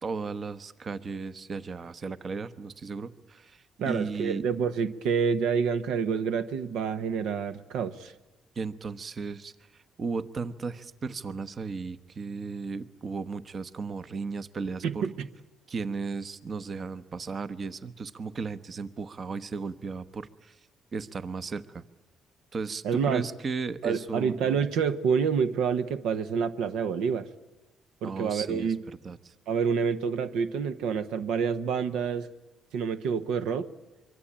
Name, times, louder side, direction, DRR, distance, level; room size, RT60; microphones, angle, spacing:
voice 1, 0.0-4.5 8.6-9.5 10.0-15.0 15.7-20.6 20.9-21.8 22.5-24.4 28.0-29.3, right 4 dB, 45° right, 14 dB, 1.0 m, -35 dB
voice 2, 3.8-8.1 14.8-15.3 22.8-23.2 23.8-27.3 28.0-28.8 29.5-32.3 32.7-33.7, right 6 dB, 85° right, 11 dB, 1.0 m, -28 dB
25.0 x 23.5 x 8.7 m, 1.1 s
cardioid pair, 90°, 0 cm